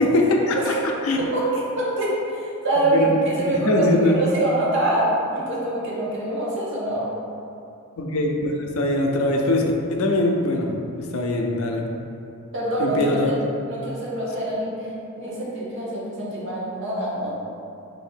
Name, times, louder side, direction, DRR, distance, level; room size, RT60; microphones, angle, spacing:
voice 1, 0.0-1.2 2.9-4.1 8.0-11.8 12.8-13.3, left 1 dB, 65° left, 1 dB, 0.4 m, -22 dB
voice 2, 1.7-3.1 3.4-7.1 12.5-13.2 13.7-14.7 15.2-17.3, right 1 dB, 55° right, -7 dB, 0.9 m, -25 dB
2.9 x 2.6 x 4.4 m, 2.6 s
head